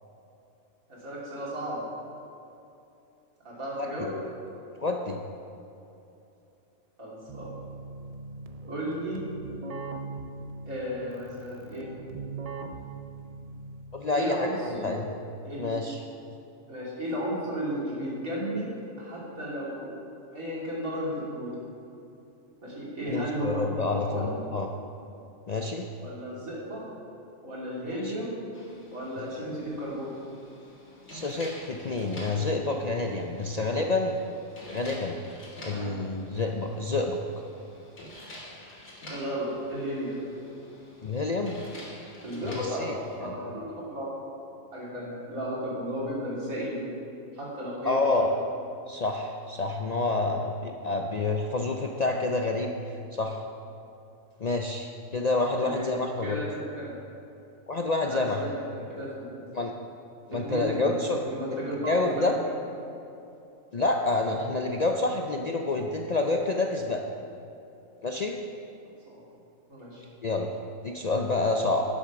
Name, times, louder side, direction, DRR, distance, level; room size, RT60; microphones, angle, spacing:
voice 1, 0.9-1.8 3.4-4.1 7.0-7.5 8.6-9.2 10.7-11.9 14.1-14.9 15.4-15.8 16.7-18.7 19.0-20.0 20.3-21.5 22.6-23.6 23.9-24.3 26.0-26.8 27.4-28.4 28.9-30.1 35.7-35.9 39.1-40.2 42.2-44.2 44.7-46.8 47.3-48.2 55.5-55.9 56.2-56.9 58.1-59.1 60.3-62.5 69.1-69.2 69.7-70.0, equal, 90° right, -6 dB, 3.3 m, -34 dB
voice 2, 4.8-5.2 13.9-15.1 15.6-16.0 23.1-24.7 25.5-25.9 27.9-28.1 29.2-29.3 31.1-34.1 34.7-35.2 35.6-37.2 41.0-41.6 42.4-43.0 43.2-43.3 47.8-48.3 48.9-53.4 54.4-56.4 57.7-58.4 59.5-59.7 60.3-61.2 61.9-62.3 63.7-67.0 68.0-68.3 70.2-70.5 70.8-71.9, left 2 dB, 55° left, 2 dB, 0.4 m, -28 dB
Keyboard (musical), 7.3-14.1, right 3 dB, 45° right, 0.4 m, -41 dB
sound 1, 28.5-43.2, left 1 dB, 75° left, 2.5 m, -48 dB
11.5 x 7.2 x 5.9 m, 2.8 s
omnidirectional pair, 1.4 m